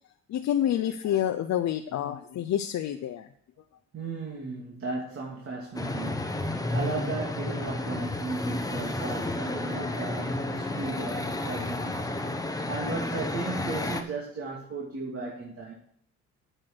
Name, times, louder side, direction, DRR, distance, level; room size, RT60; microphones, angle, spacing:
voice 1, 0.3-3.3, left 11 dB, 65° left, 7 dB, 0.7 m, -28 dB
voice 2, 3.9-12.1 12.7-15.8, right 3 dB, 50° right, -2 dB, 2.5 m, -36 dB
sound 1, 5.8-14.0, left 2 dB, 10° left, 1.1 m, -31 dB
Acoustic guitar, 10.3-13.5, left 4 dB, 40° left, 1.1 m, -46 dB
8.9 x 6.5 x 6.1 m, 0.64 s
cardioid pair, 90°, 30 cm